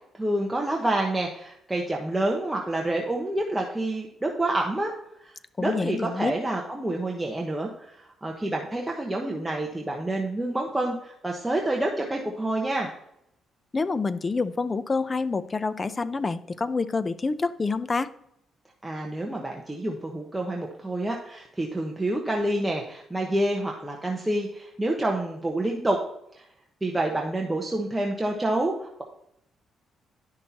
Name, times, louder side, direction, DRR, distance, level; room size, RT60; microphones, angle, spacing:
voice 1, 0.1-4.9 5.2-12.9 18.8-26.0 26.3-26.5 26.8-29.0, right 1 dB, 10° right, 0 dB, 1.2 m, -28 dB
voice 2, 5.6-6.3 13.7-18.1, left 4 dB, 30° left, 14 dB, 0.5 m, -27 dB
11.0 x 6.3 x 2.9 m, 0.75 s
cardioid pair, 90°, 0 cm